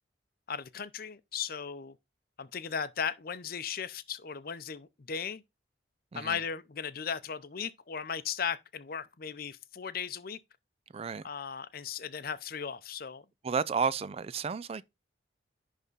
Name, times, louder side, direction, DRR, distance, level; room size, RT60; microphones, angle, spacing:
voice 1, 0.5-2.0 2.4-5.4 6.1-10.4 11.2-13.2, left 7 dB, 50° left, 0.6 m, -37 dB
voice 2, 10.9-11.2 13.4-14.8, right 5 dB, 30° right, 0.3 m, -32 dB
11.0 x 3.6 x 3.9 m
head